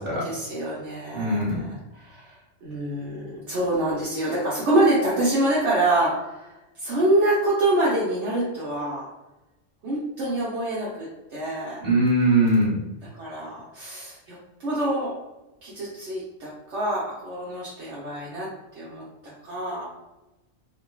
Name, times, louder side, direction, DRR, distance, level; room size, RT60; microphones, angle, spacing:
voice 1, 0.0-9.1 9.8-11.8 13.1-15.1 15.6-18.5 18.7-19.9, right 1 dB, 70° right, -7 dB, 1.0 m, -26 dB
voice 2, 1.1-1.6 11.8-12.8, right 1 dB, 40° right, -6 dB, 1.5 m, -21 dB
3.6 x 2.2 x 2.3 m, 1.0 s
omnidirectional pair, 1.3 m